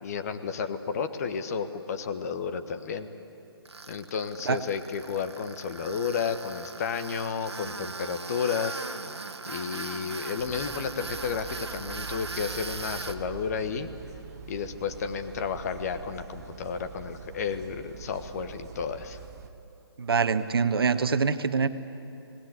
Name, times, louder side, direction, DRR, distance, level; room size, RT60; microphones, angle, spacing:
voice 1, 0.0-3.1 3.9-8.8 9.5-13.9 14.5-19.2, left 6 dB, 40° left, 8 dB, 1.3 m, -32 dB
Tools, 3.7-13.2, right 4 dB, 80° right, 1.4 m, -39 dB
sound 1, 10.4-19.5, right 8 dB, 40° right, 1.3 m, -45 dB
voice 2, 20.0-21.7, right 5 dB, 65° right, 11 dB, 1.2 m, -24 dB
28.0 x 18.5 x 8.1 m, 2.9 s
figure-of-eight pair, 150°, 14 cm